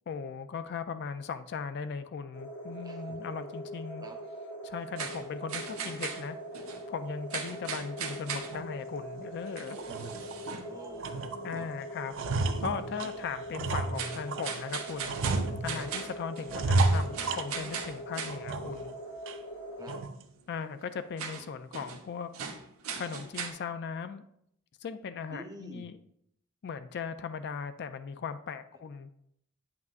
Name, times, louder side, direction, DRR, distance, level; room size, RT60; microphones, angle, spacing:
voice 1, 0.1-4.1 4.6-6.4 6.9-9.8 11.4-12.1 12.6-19.0 20.5-22.3 23.0-24.2 24.8-26.0 26.6-29.1, left 6 dB, 55° left, 11 dB, 0.3 m, -38 dB
sound 1, 2.3-20.0, equal, 80° left, 2.0 m, -42 dB
voice 2, 2.8-3.2 4.0-4.1 9.7-11.2 11.5-11.7 15.7-15.9 19.8-19.9 25.3-25.9, right 1 dB, 20° right, 4 dB, 0.9 m, -47 dB
sound 2, 5.0-6.9 7.3-8.7 9.5-10.8 11.1-11.3 13.9-18.4 21.2-22.0 22.3-23.5, right 6 dB, 85° right, 0.9 m, -39 dB
sound 3, 8.5-8.7 9.2-9.3 9.7-10.6 11.0-11.6 11.9-14.5 15.0-16.0 16.5-17.9 18.3-18.9 19.3-19.4 19.9-20.2, right 2 dB, 60° right, 0.5 m, -31 dB
9.0 x 5.9 x 2.5 m, 0.74 s
head